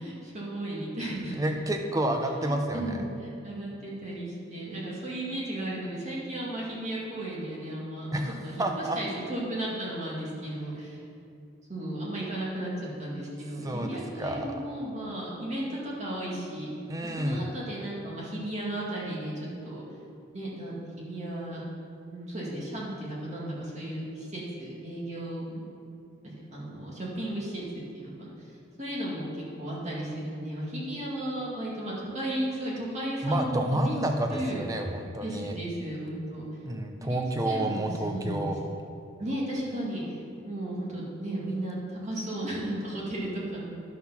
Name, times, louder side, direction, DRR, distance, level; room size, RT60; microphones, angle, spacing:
voice 1, 0.0-1.4 2.4-8.1 8.4-8.5 9.0-11.0 11.7-16.7 17.2-19.8 20.3-21.6 22.0-25.6 26.2-28.3 28.8-34.0 34.3-34.6 35.2-36.4 37.0-37.2 37.4-38.5 39.2-40.2 40.4-43.7, right 1 dB, 35° right, -5 dB, 2.1 m, -35 dB
voice 2, 1.4-3.1 8.1-9.0 10.9-11.0 13.6-14.6 16.9-17.5 33.2-35.5 36.6-38.6, right 1 dB, 15° right, 4 dB, 0.6 m, -30 dB
11.0 x 5.8 x 5.8 m, 2.7 s
head